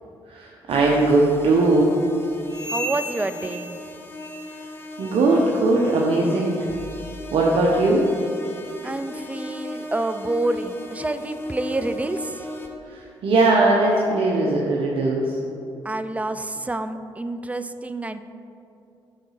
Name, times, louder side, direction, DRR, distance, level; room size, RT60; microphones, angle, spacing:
voice 1, 0.3-1.9 5.0-6.7 7.3-8.0 12.8-15.4, right 2 dB, 65° right, -2 dB, 0.9 m, -19 dB
sound 1, 0.7-12.7, left 1 dB, 25° left, 1.0 m, -37 dB
sound 2, 2.4-4.7 4.9-5.3 5.8-6.0 6.6-6.8 7.5-7.6 8.3-8.4, equal, 45° left, 1.9 m, -35 dB
voice 2, 2.7-3.8 8.8-12.5 15.8-18.2, right 2 dB, 15° right, 11 dB, 0.4 m, -28 dB
9.1 x 4.1 x 5.6 m, 2.6 s
cardioid pair, 70°, 10 cm